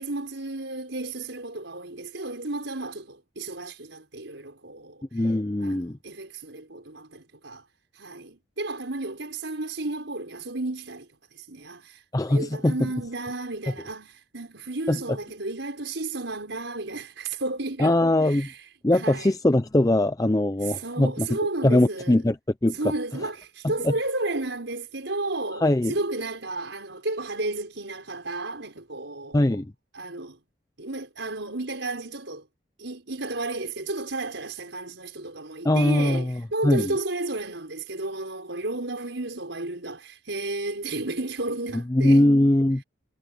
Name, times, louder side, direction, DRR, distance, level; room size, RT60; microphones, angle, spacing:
voice 1, 0.0-5.3 5.6-7.7 7.9-19.3 20.6-22.2 22.7-29.6 29.9-30.4 30.8-32.5 32.8-42.2, right 2 dB, 80° right, 5.1 m, -33 dB
voice 2, 5.1-6.0 12.1-12.7 14.9-15.0 17.8-18.5 18.8-21.3 21.6-22.4 22.6-22.8 23.8-23.9 25.6-25.9 29.3-29.7 35.6-36.2 36.6-36.9 41.9-42.8, left 1 dB, 20° left, 0.5 m, -21 dB
head